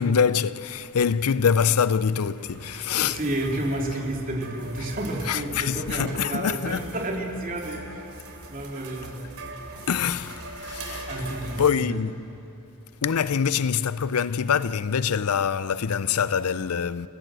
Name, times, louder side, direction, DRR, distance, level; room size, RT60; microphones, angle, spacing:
voice 1, 0.0-3.2 4.8-4.9 5.2-6.9 9.9-11.3 11.6-12.4 13.0-17.1, left 7 dB, 85° left, 0.5 m, -25 dB
sound 1, 2.4-11.8, right 2 dB, 75° right, 3.1 m, -41 dB
voice 2, 2.9-8.1 8.5-9.2 11.1-11.9, right 1 dB, 40° right, 3.2 m, -31 dB
30.0 x 18.5 x 7.7 m
head